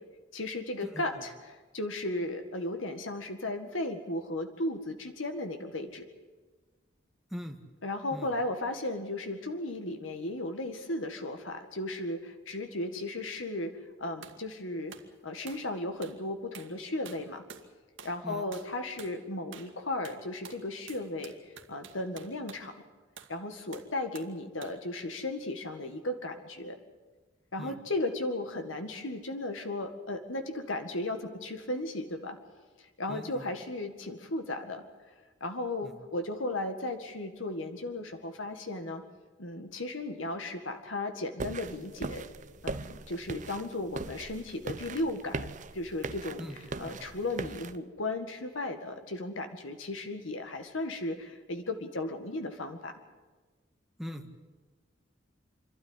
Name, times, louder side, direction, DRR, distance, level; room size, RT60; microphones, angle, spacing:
voice 1, 0.3-6.0 7.8-14.9 15.2-17.4 18.0-22.8 23.3-26.8 27.5-32.4 32.8-34.8 35.4-39.0 39.4-42.3 42.6-53.0, left 2 dB, 90° left, 6 dB, 2.0 m, -35 dB
sound 1, 14.2-14.4 14.9-15.1 15.5-15.7 16.0-16.2 16.5-16.8 17.1-17.7 18.0-18.2 18.5-18.7 19.0-19.2 19.5-19.8 20.0-22.7 23.2-23.4 23.7-24.4 24.6-24.8, right 6 dB, 75° right, 2.0 m, -49 dB
voice 2, 33.1-33.4 35.8-36.0 46.4-46.6 46.8-47.0 54.0-54.2, equal, ahead, 4 dB, 1.7 m, -40 dB
sound 2, 41.4-47.8, right 3 dB, 40° right, 0.8 m, -40 dB
27.0 x 12.5 x 9.9 m, 1.3 s
head